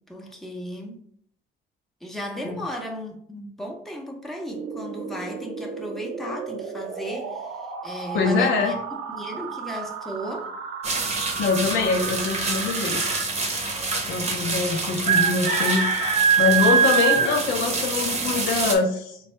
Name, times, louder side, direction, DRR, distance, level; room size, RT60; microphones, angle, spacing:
voice 1, 0.1-1.0 2.0-8.8 9.2-10.5 16.6-17.0, equal, ahead, 0 dB, 0.7 m, -35 dB
sound 1, 4.5-13.3, right 5 dB, 90° right, 0.6 m, -34 dB
voice 2, 8.1-8.8 11.4-13.2 14.1-15.9 16.4-19.2, left 4 dB, 75° left, 2 dB, 0.7 m, -24 dB
sound 2, 10.8-18.8, right 5 dB, 35° right, 0.8 m, -24 dB
3.2 x 2.3 x 4.2 m, 0.67 s
cardioid pair, 90°, 20 cm